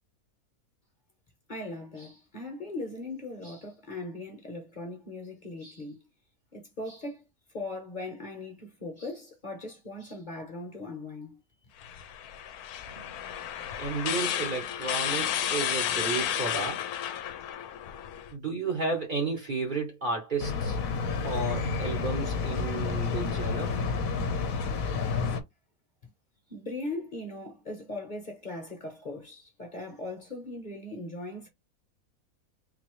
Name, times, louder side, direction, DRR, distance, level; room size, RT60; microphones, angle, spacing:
voice 1, 1.5-6.0 6.5-7.2 7.5-11.4 26.0-26.1 26.5-31.5, left 2 dB, 35° left, 1.0 m, -39 dB
sound 1, 11.8-18.3, left 10 dB, 90° left, 1.1 m, -32 dB
voice 2, 13.8-16.8 18.3-20.8 21.2-23.7, right 3 dB, 40° right, 0.9 m, -32 dB
sound 2, 20.4-25.4, left 4 dB, 70° left, 1.1 m, -30 dB
4.0 x 2.6 x 3.1 m
omnidirectional pair, 1.5 m